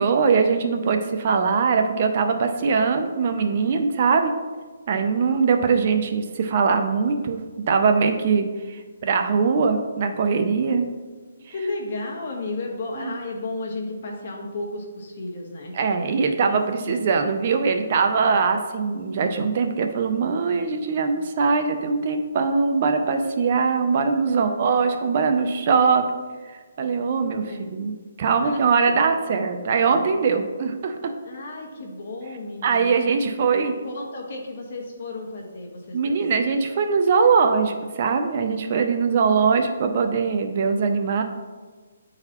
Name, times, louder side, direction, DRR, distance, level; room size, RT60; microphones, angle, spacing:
voice 1, 0.0-4.3 4.9-7.4 7.7-10.8 13.0-13.1 15.7-26.0 26.5-27.9 28.2-31.1 32.6-33.7 35.9-41.2, right 5 dB, 35° right, 6 dB, 0.5 m, -21 dB
voice 2, 11.3-15.7 16.4-17.0 24.3-24.9 27.2-27.6 28.3-28.8 31.2-33.6 33.8-36.1, left 2 dB, 45° left, 0 dB, 1.4 m, -34 dB
9.8 x 3.9 x 2.9 m, 1.4 s
hypercardioid pair, 170°, 0 cm